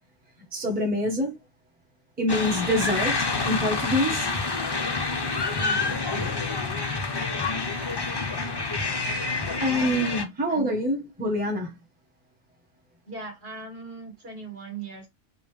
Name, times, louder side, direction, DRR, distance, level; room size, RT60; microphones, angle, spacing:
voice 1, 0.5-1.4 2.2-4.3 8.8-8.9 9.6-11.7, equal, 10° right, 1.1 m, -26 dB
sound 1, 2.3-10.2, left 3 dB, 30° left, 0.4 m, -28 dB
voice 2, 5.5-6.4 10.5-10.7 13.1-15.1, right 4 dB, 50° right, 1.9 m, -39 dB
5.0 x 2.4 x 3.2 m
omnidirectional pair, 1.3 m